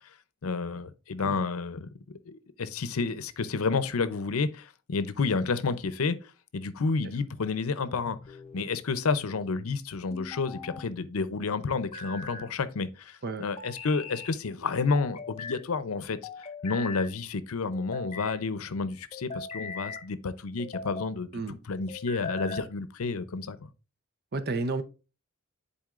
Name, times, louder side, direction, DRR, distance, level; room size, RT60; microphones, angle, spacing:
voice 1, 0.4-6.2 6.5-8.2 8.5-16.2 16.6-23.7, left 4 dB, 85° left, 0.6 m, -30 dB
sound 1, 8.1-8.7 10.1-10.9 11.7-12.5 13.6-14.4 14.9-15.6 16.2-17.1 17.7-18.4 19.1-20.1 20.6-21.1 21.9-22.7, left 3 dB, 30° left, 0.6 m, -40 dB
voice 2, 24.3-24.8, right 3 dB, 50° right, 0.7 m, -31 dB
10.5 x 4.2 x 2.4 m
head